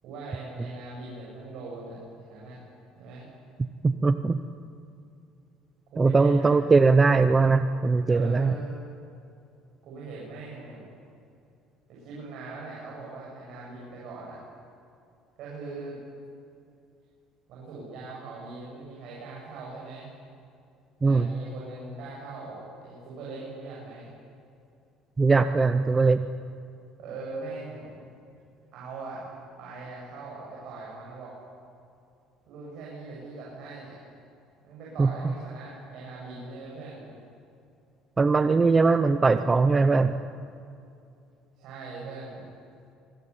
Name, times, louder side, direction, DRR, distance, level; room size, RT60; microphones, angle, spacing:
voice 1, 0.0-2.6 3.0-3.3 5.9-6.5 8.1-8.8 9.8-10.9 11.9-14.4 15.4-16.0 17.5-20.1 21.0-24.1 27.0-28.0 28.7-29.3 29.6-31.3 32.5-34.0 34.6-37.1 41.6-42.4, right 3 dB, 50° right, -5 dB, 7.7 m, -41 dB
voice 2, 3.8-4.4 6.0-8.6 21.0-21.3 25.2-26.2 35.0-35.1 38.2-40.1, right 4 dB, 15° right, 10 dB, 0.6 m, -20 dB
25.5 x 21.0 x 9.9 m, 2.6 s
cardioid pair, 180°, 0 cm